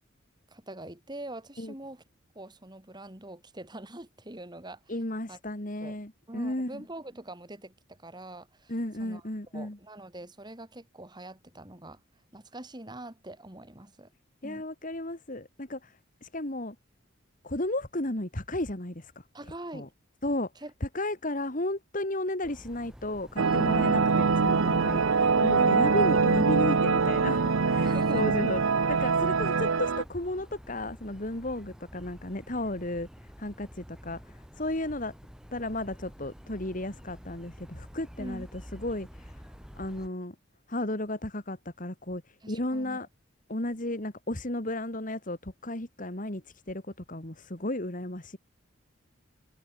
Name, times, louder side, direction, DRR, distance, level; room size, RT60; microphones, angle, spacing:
voice 1, 0.5-2.0 2.3-4.8 5.3-5.4 5.8-6.0 6.3-8.7 9.0-9.2 9.5-12.0 12.3-14.1 14.4-14.7 19.3-19.9 20.6-20.7 25.5-26.0 27.8-28.4 38.2-38.5 42.4-43.0, right 1 dB, 20° right, 2.8 m, -43 dB
voice 2, 4.9-6.8 8.7-9.8 14.4-16.8 17.4-19.2 19.7-19.9 20.2-20.5 20.8-28.6 28.9-33.1 33.4-35.1 35.5-39.4 39.7-40.3 40.7-43.1 43.5-46.8 47.1-48.4, left 1 dB, 40° left, 2.6 m, -34 dB
sound 1, 22.4-40.1, equal, 5° right, 3.5 m, -49 dB
sound 2, 23.4-30.0, right 4 dB, 85° right, 0.8 m, -24 dB
head